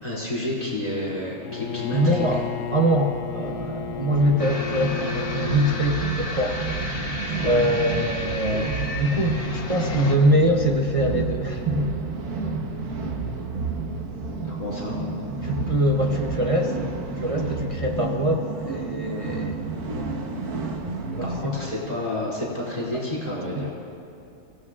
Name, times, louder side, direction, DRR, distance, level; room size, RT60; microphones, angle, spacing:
voice 1, 0.0-2.4 7.4-7.7 14.4-15.0 21.2-23.7, left 1 dB, 25° left, -5 dB, 2.9 m, -30 dB
Bowed string instrument, 1.4-6.2, left 10 dB, 70° left, 0.9 m, -33 dB
voice 2, 1.9-7.0 7.4-11.9 15.4-16.8 17.2-19.6 21.2-21.3 21.6-21.7 23.5-23.7, equal, 30° right, 0 dB, 0.6 m, -23 dB
sound 1, 2.2-21.5, right 3 dB, 85° right, 1.6 m, -31 dB
sound 2, 4.4-10.2, left 2 dB, 85° left, 2.0 m, -33 dB
24.0 x 16.5 x 2.4 m, 2.8 s
omnidirectional pair, 1.6 m